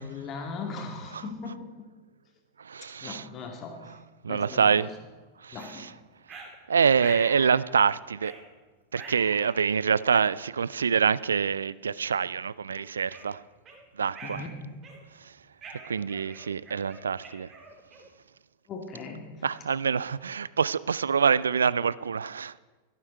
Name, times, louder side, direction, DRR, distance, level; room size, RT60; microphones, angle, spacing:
voice 1, 0.0-1.7 3.0-4.0 4.3-4.9 5.5-5.9 14.2-14.5 18.7-19.5, left 4 dB, 30° left, 1.9 m, -39 dB
voice 2, 2.6-3.2 4.2-4.9 5.4-5.9 6.7-8.4 8.9-13.4 14.0-14.4 15.2-15.3 15.9-17.5 19.4-22.6, right 6 dB, 70° right, 0.3 m, -26 dB
sound 1, 4.7-4.8 5.6-5.7 6.3-6.5 7.0-7.6 8.2-8.4 8.9-9.8 10.6-10.7 11.4-11.6 12.0-12.2 12.7-13.8 14.1-14.5 14.8-15.2 15.6-18.2, right 4 dB, 30° right, 2.4 m, -44 dB
13.5 x 12.0 x 4.5 m
figure-of-eight pair, 90°, 0 cm